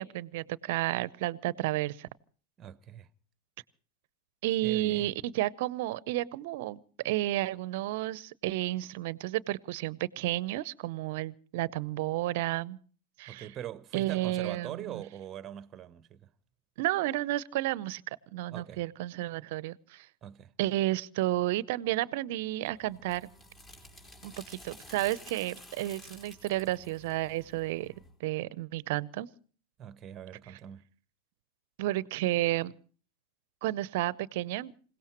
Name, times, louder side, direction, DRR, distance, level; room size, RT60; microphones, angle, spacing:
voice 1, 0.0-2.1 4.4-6.8 7.0-12.8 13.2-13.5 13.9-15.0 16.8-18.0 18.3-20.1 20.6-23.3 24.2-27.9 28.2-29.3 31.8-32.7 33.6-34.7, right 16 dB, 60° right, 0.7 m, -31 dB
voice 2, 2.6-3.1 4.6-5.1 13.3-16.3 18.5-18.8 20.2-20.5 29.8-30.8, right 10 dB, 30° right, 0.9 m, -42 dB
sound 1, 22.7-28.1, left 1 dB, 25° left, 3.5 m, -52 dB
27.0 x 17.5 x 3.0 m
hypercardioid pair, 100°, 0 cm